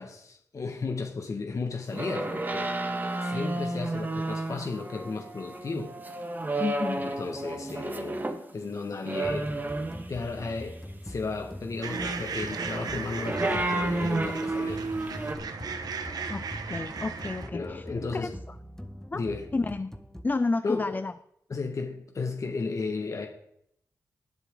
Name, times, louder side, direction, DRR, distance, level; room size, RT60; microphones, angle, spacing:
voice 1, 0.0-2.7 3.2-5.9 7.0-8.2 8.5-9.5 10.1-10.8 11.0-14.8 17.5-18.3 19.1-19.5 20.6-21.0 21.5-23.3, left 4 dB, 55° left, 3 dB, 1.7 m, -34 dB
sound 1, 1.9-8.4 9.0-10.3 11.8-15.4, right 2 dB, 30° right, 1.7 m, -31 dB
voice 2, 6.6-7.0 16.3-17.8 18.1-18.3 19.1-19.2 19.5-19.9 20.2-21.1, left 3 dB, 30° left, 12 dB, 0.5 m, -30 dB
sound 2, 9.2-20.2, equal, 5° left, 1.4 m, -43 dB
sound 3, 11.8-17.5, right 5 dB, 75° right, 1.1 m, -37 dB
20.0 x 7.2 x 3.9 m, 0.72 s
cardioid pair, 60°, 7 cm